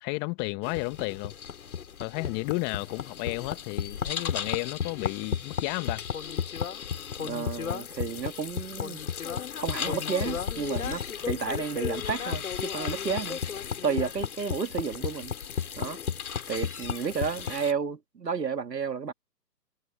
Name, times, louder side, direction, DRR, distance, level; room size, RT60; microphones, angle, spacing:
voice 1, 0.0-1.3 2.0-6.0, left 26 dB, 20° left, 1.6 m, -32 dB
sound 1, 0.6-17.7, left 7 dB, 60° left, 5.0 m, -34 dB
voice 2, 7.2-9.0 9.6-13.4 13.8-15.3 15.8-16.0 16.5-19.1, right 6 dB, 80° right, 2.5 m, -32 dB
hypercardioid pair, 140°, 48 cm